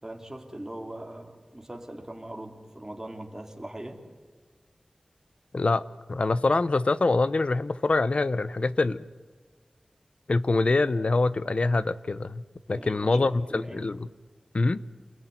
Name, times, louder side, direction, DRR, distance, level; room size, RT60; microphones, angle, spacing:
voice 1, 0.0-4.0 12.7-13.9, right 1 dB, 20° right, 2 dB, 3.6 m, -41 dB
voice 2, 5.5-5.8 6.1-9.0 10.3-12.4 12.7-14.1 14.5-14.8, left 3 dB, 65° left, 16 dB, 0.9 m, -24 dB
28.5 x 21.0 x 9.7 m, 1.5 s
wide cardioid pair, 60°, 2 cm